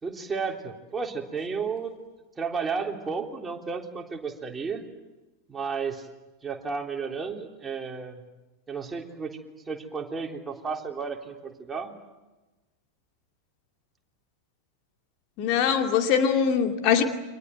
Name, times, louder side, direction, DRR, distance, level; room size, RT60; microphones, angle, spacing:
voice 1, 0.0-1.9 2.4-4.8 5.5-6.1 6.4-8.2 8.7-9.4 9.7-12.0, right 5 dB, 15° right, 2 dB, 3.6 m, -33 dB
voice 2, 15.4-17.0, left 7 dB, 40° left, 4 dB, 2.4 m, -22 dB
30.0 x 25.5 x 7.8 m, 1.1 s
figure-of-eight pair, 90°, 0 cm